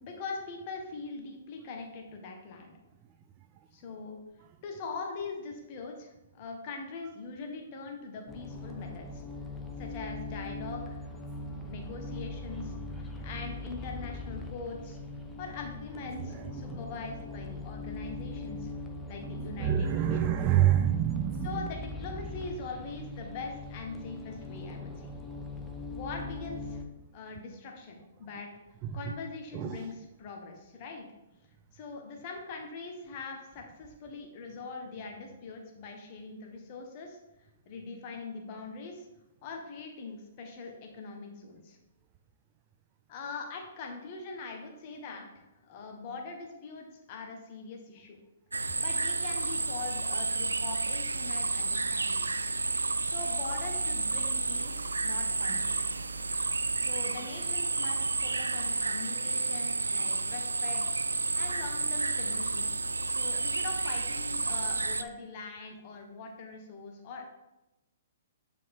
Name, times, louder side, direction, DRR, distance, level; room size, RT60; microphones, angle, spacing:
voice 1, 0.0-2.7 3.7-4.2 4.6-9.2 9.8-11.0 11.3-15.0 15.4-18.7 19.1-20.3 21.4-25.1 25.9-26.8 27.1-28.5 28.9-31.1 31.7-37.2 37.6-39.1 39.4-41.8 43.1-48.2 48.8-52.2 53.0-55.7 56.8-60.8 61.3-62.7 63.0-67.3, left 4 dB, 40° left, 2 dB, 1.5 m, -42 dB
sound 1, 8.3-26.8, left 2 dB, 10° left, 0.9 m, -41 dB
voice 2, 19.4-21.7 29.5-29.9, right 11 dB, 30° right, 7 dB, 0.5 m, -27 dB
sound 2, 48.5-65.0, right 3 dB, 90° right, 0.4 m, -31 dB
9.3 x 4.9 x 3.7 m, 0.95 s
hypercardioid pair, 125°, 0 cm